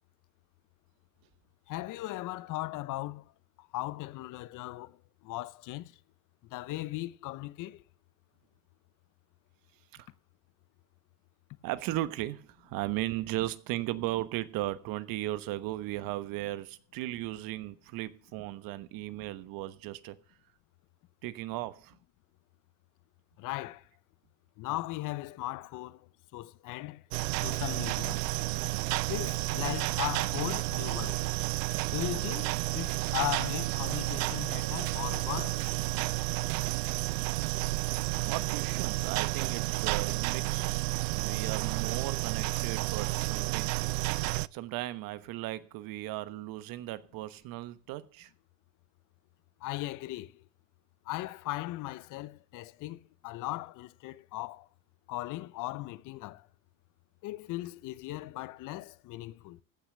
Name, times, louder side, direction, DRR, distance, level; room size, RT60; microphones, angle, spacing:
voice 1, 1.7-3.2 3.7-4.9 5.2-5.9 6.5-7.8 23.4-23.8 24.6-26.0 26.3-27.0 27.4-28.2 29.1-31.2 31.9-32.5 32.7-35.7 49.6-50.3 51.1-54.7 55.1-56.4 57.2-59.6, left 17 dB, 55° left, 0.8 m, -37 dB
voice 2, 11.6-20.2 21.2-22.0 38.3-40.8 41.2-43.7 44.2-48.3, right 16 dB, 65° right, 1.2 m, -36 dB
sound 1, 27.1-44.5, right 22 dB, 90° right, 0.5 m, -31 dB
15.0 x 6.0 x 6.7 m
supercardioid pair, 105°, 37 cm